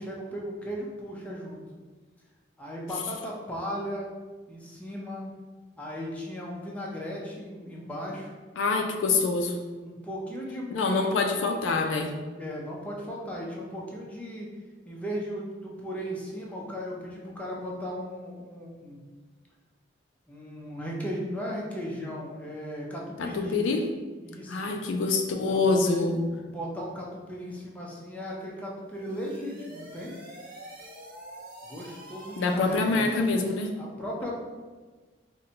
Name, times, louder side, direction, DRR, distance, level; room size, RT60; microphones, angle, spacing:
voice 1, 0.0-1.6 2.6-4.1 4.5-5.3 5.8-8.3 9.8-11.2 12.4-14.5 14.9-19.0 20.3-23.6 24.2-24.7 25.4-26.1 26.4-30.1 31.7-33.1 33.8-34.4, equal, 10° left, -3 dB, 0.5 m, -36 dB
voice 2, 8.6-9.6 10.7-12.1 23.2-23.8 24.5-26.2 32.4-33.7, left 3 dB, 80° left, 4 dB, 0.3 m, -25 dB
sound 1, 28.8-33.7, right 1 dB, 50° right, 0.7 m, -47 dB
3.9 x 2.1 x 2.7 m, 1.3 s
head